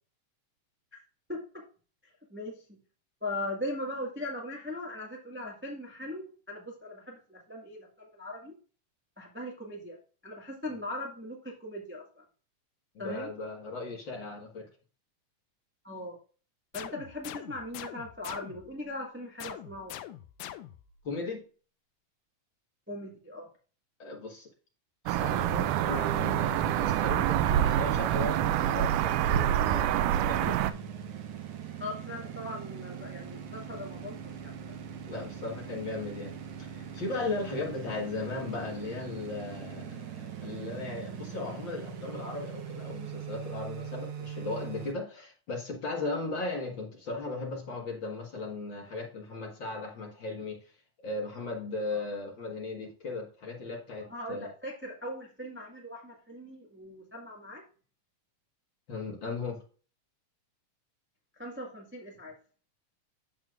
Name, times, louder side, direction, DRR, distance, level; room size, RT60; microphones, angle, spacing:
voice 1, 1.3-1.6 2.0-2.8 3.2-8.5 9.2-12.2 13.0-13.3 15.8-16.2 16.7-20.0 22.9-23.5 31.8-34.7 37.6-37.7 51.9-52.0 54.1-57.6 61.3-62.4, left 1 dB, 10° right, -1 dB, 0.6 m, -40 dB
voice 2, 13.0-14.6 21.0-21.4 24.0-24.5 25.0-29.8 30.1-30.6 35.1-36.3 36.6-50.7 51.0-54.5 58.9-59.6, left 3 dB, 45° left, 0 dB, 1.8 m, -37 dB
sound 1, 16.7-18.8 19.4-21.0, left 12 dB, 85° left, 2.1 m, -44 dB
sound 2, 25.1-30.7, right 12 dB, 80° right, 2.0 m, -26 dB
sound 3, 25.2-44.9, right 7 dB, 65° right, 1.4 m, -41 dB
9.5 x 7.2 x 2.5 m, 0.38 s
omnidirectional pair, 3.7 m